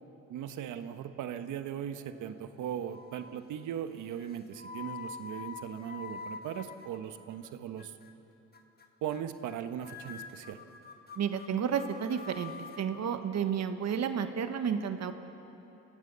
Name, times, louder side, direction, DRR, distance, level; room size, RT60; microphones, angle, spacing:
voice 1, 0.3-7.9 9.0-10.6, right 9 dB, 80° right, 9 dB, 1.2 m, -38 dB
sound 1, 1.9-2.5 2.9-3.4 4.2-7.5 7.8-8.1 8.5-8.8 9.1-9.2 9.4-9.6 9.8-12.8, left 5 dB, 30° left, 1.9 m, -46 dB
voice 2, 11.2-15.1, right 7 dB, 60° right, 8 dB, 1.4 m, -31 dB
26.5 x 17.0 x 6.9 m, 3.0 s
cardioid pair, 90°, 30 cm